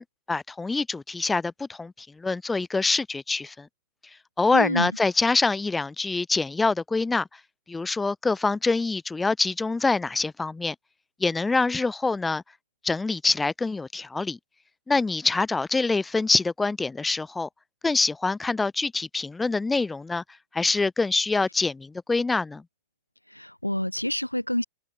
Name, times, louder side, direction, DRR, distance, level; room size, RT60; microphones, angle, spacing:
voice 1, 0.0-3.7 4.4-7.3 7.7-10.8 11.2-12.4 12.8-14.4 14.9-17.5 17.8-20.2 20.5-22.6, left 3 dB, 10° left, 1.9 m, -25 dB
voice 2, 4.5-4.9 23.3-24.6, left 1 dB, 90° left, 2.9 m, -27 dB
figure-of-eight pair, 90°, 0 cm